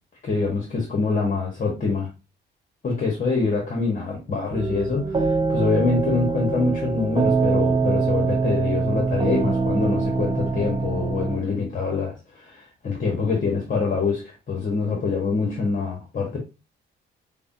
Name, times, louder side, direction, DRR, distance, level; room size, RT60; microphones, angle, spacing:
voice 1, 0.2-2.1 2.8-16.4, left 4 dB, 40° left, 1.2 m, -25 dB
sound 1, 4.5-11.4, right 4 dB, 25° right, 0.6 m, -23 dB
5.3 x 2.2 x 2.7 m
cardioid pair, 90°, 20 cm